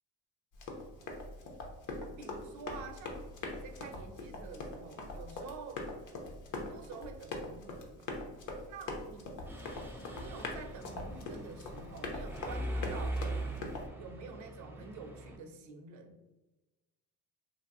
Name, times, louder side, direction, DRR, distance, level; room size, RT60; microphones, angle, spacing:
Run, 0.5-13.9, left 2 dB, 65° left, 0.8 m, -42 dB
voice 1, 2.0-3.2 3.5-5.9 6.5-8.1 8.6-9.4 10.1-13.2 14.0-16.2, right 4 dB, 60° right, 5 dB, 0.6 m, -48 dB
Mechanisms, 9.5-15.4, right 1 dB, 5° right, 0.4 m, -41 dB
2.8 x 2.7 x 2.5 m, 1.1 s
supercardioid pair, 85°, 34 cm